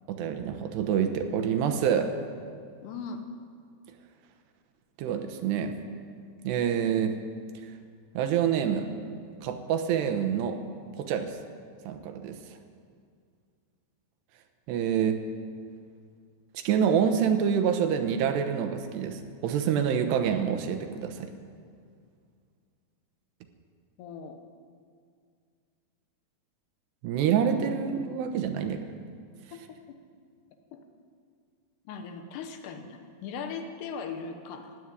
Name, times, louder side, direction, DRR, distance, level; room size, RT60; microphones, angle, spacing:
voice 1, 0.1-2.1 5.0-5.8 6.4-7.1 8.1-8.9 9.4-10.6 11.0-11.3 11.9-12.4 14.7-15.2 16.5-21.3 27.0-28.8, right 8 dB, 80° right, 7 dB, 3.1 m, -27 dB
voice 2, 2.8-3.2 24.0-24.4 29.5-30.0 30.7-30.8 31.9-34.8, left 5 dB, 75° left, 6 dB, 3.2 m, -39 dB
15.5 x 9.0 x 9.8 m, 2.2 s
omnidirectional pair, 4.9 m